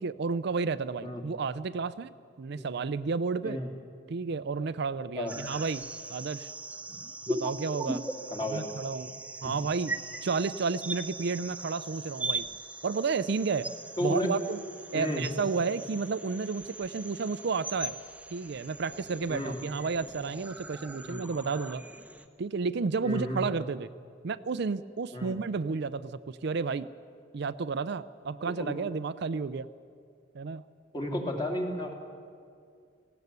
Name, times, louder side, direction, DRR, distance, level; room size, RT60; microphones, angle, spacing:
voice 1, 0.0-2.1 2.4-3.6 4.1-5.8 6.1-6.5 7.3-8.0 8.4-9.9 10.2-12.5 12.8-13.7 14.0-14.6 14.9-18.0 18.3-21.8 22.4-23.9 24.2-26.9 27.3-29.7 30.3-30.6, right 4 dB, 60° right, 13 dB, 0.5 m, -31 dB
sound 1, 5.3-22.3, right 2 dB, 5° right, 0.8 m, -40 dB
voice 2, 8.3-8.7 9.4-9.5 14.0-14.3 14.9-15.2 19.3-19.6 21.0-21.2 23.0-23.5 25.1-25.4 28.5-28.8 30.9-31.9, left 1 dB, 25° left, 2 dB, 2.6 m, -32 dB
19.0 x 16.5 x 8.2 m, 2.3 s
head